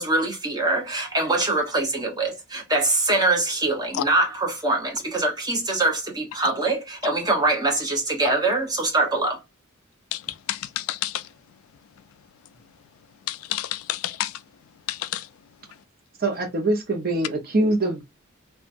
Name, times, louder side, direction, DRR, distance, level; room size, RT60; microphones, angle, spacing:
voice 1, 0.0-9.4, right 2 dB, 20° right, 0.8 m, -23 dB
voice 2, 10.5-11.1 13.3-14.3 14.9-15.2, left 13 dB, 80° left, 0.3 m, -29 dB
voice 3, 16.2-18.0, right 2 dB, 45° right, 0.8 m, -23 dB
2.8 x 2.2 x 2.5 m
head